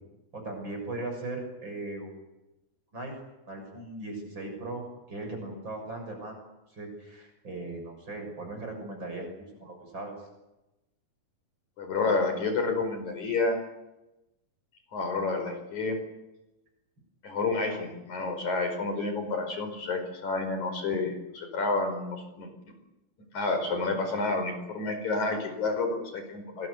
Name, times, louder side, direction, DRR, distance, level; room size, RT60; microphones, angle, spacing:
voice 1, 0.3-2.1 2.9-3.1 3.5-6.4 6.7-9.3 9.5-10.1, right 2 dB, 30° right, 3 dB, 7.3 m, -38 dB
voice 2, 11.8-13.6 14.9-16.0 17.2-22.5 23.3-26.7, left 3 dB, 50° left, 5 dB, 6.1 m, -29 dB
27.5 x 21.0 x 8.2 m, 0.98 s
omnidirectional pair, 4.3 m